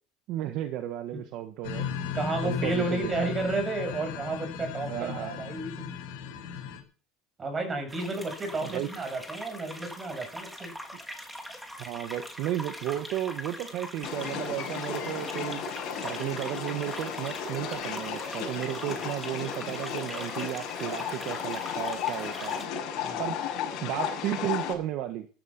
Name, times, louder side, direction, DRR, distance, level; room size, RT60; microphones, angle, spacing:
voice 1, 0.3-1.9 2.4-3.1 4.9-5.4 8.6-8.9 11.8-15.7 16.0-22.6 23.2-23.5 23.8-25.3, right 13 dB, 55° right, 8 dB, 1.4 m, -33 dB
sound 1, 1.6-6.8, left 7 dB, 80° left, 5.7 m, -35 dB
voice 2, 2.1-5.9 7.4-10.7 23.0-23.2, right 2 dB, 20° right, 5 dB, 7.7 m, -32 dB
sound 2, 7.9-22.7, equal, 5° right, 2.8 m, -42 dB
sound 3, 14.0-24.7, left 7 dB, 55° left, 6.8 m, -34 dB
15.0 x 12.5 x 6.0 m, 0.39 s
supercardioid pair, 140°, 0 cm